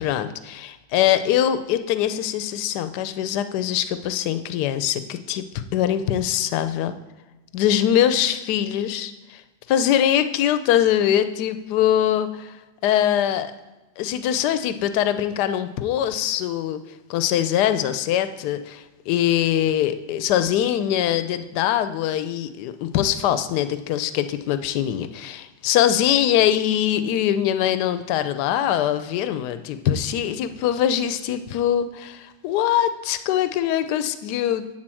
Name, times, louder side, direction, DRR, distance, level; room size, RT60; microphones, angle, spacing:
voice 1, 0.0-6.9 7.5-9.4 9.7-12.5 12.8-13.5 14.0-16.8 17.1-34.6, left 10 dB, 70° left, 11 dB, 1.1 m, -22 dB
10.5 x 4.1 x 7.6 m, 1.1 s
omnidirectional pair, 2.1 m